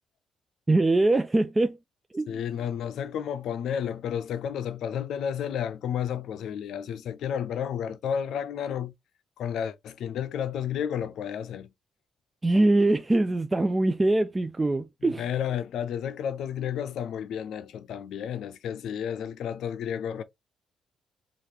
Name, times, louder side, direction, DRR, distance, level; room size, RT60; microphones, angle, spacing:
voice 1, 0.7-1.8 2.1-2.4 12.4-15.3, right 2 dB, 20° right, 0.3 m, -23 dB
voice 2, 2.3-8.9 9.4-11.7 15.0-20.2, left 8 dB, 75° left, 0.5 m, -31 dB
2.8 x 2.5 x 3.1 m
cardioid pair, 90°, 0 cm